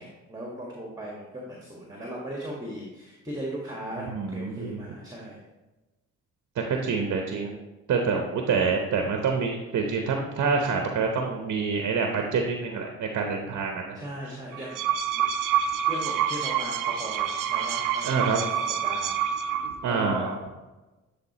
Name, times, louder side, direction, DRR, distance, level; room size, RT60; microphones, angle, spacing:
voice 1, 0.0-5.4 13.9-15.2 15.9-19.2 19.9-20.4, right 1 dB, 10° right, -3 dB, 1.6 m, -37 dB
voice 2, 4.0-4.8 6.7-7.6 7.9-14.0 18.0-18.4 19.8-20.3, right 5 dB, 55° right, 3 dB, 0.9 m, -27 dB
sound 1, 14.5-19.9, right 9 dB, 75° right, 0.6 m, -27 dB
10.5 x 3.8 x 3.0 m, 1.1 s
hypercardioid pair, 50°, 33 cm